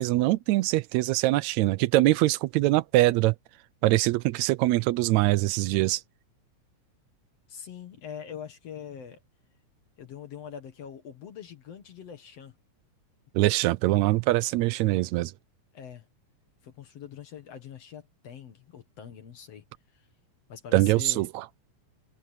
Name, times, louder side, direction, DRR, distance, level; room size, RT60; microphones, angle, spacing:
voice 1, 0.0-3.3 3.8-6.0 13.3-15.3 20.7-21.4, right 18 dB, 80° right, 1.7 m, -23 dB
voice 2, 7.5-9.2 10.0-12.5 15.7-16.1 16.6-19.6 19.9-20.0 20.5-21.3, left 8 dB, 60° left, 2.5 m, -43 dB
omnidirectional pair, 3.5 m